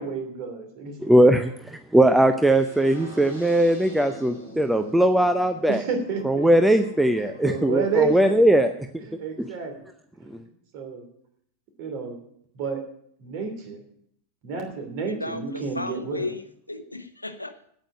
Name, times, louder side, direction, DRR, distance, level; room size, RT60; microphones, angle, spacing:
voice 1, 0.0-1.0 5.7-6.5 7.4-8.5 9.2-9.7 10.2-10.4 10.7-11.0 11.8-12.2 12.5-12.8 13.2-13.8 14.4-16.2, right 5 dB, 45° right, 5 dB, 3.0 m, -30 dB
voice 2, 1.0-5.8 6.2-9.1 9.4-9.5 10.3-10.4, right 1 dB, 5° right, 8 dB, 0.7 m, -20 dB
sound 1, 2.4-8.4, equal, 80° right, 6.0 m, -44 dB
voice 3, 15.1-17.6, left 2 dB, 85° left, 10 dB, 0.9 m, -34 dB
8.9 x 8.3 x 8.7 m, 0.68 s
figure-of-eight pair, 90°, 0 cm